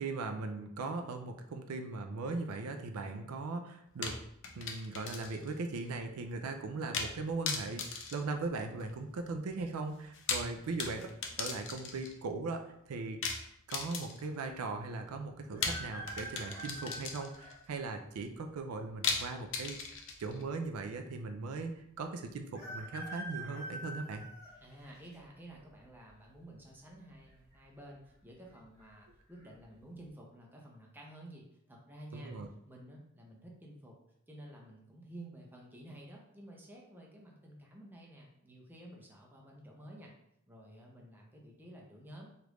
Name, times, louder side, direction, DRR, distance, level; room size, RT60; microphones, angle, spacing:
voice 1, 0.0-4.2 4.6-11.1 11.4-13.2 13.7-24.2 32.1-32.5, right 3 dB, 90° right, 5 dB, 0.4 m, -39 dB
sound 1, 4.0-5.5 5.8-5.9 6.9-7.2 7.5-9.0 10.0-12.2 13.2-14.4 15.6-17.5 19.0-20.4, left 5 dB, 60° left, 0.5 m, -38 dB
sound 2, 15.5-17.6 18.2-18.3 19.4-20.1 20.4-20.5 20.6-20.7 22.5-25.2 25.7-26.1 27.2-27.6 27.8-27.9 28.5-28.8 29.3-29.5, right 1 dB, 15° left, 1.4 m, -45 dB
voice 2, 24.6-32.3 32.7-34.0 34.3-40.1 40.5-42.3, right 1 dB, 10° right, -2 dB, 0.6 m, -52 dB
3.3 x 2.4 x 3.0 m, 0.76 s
head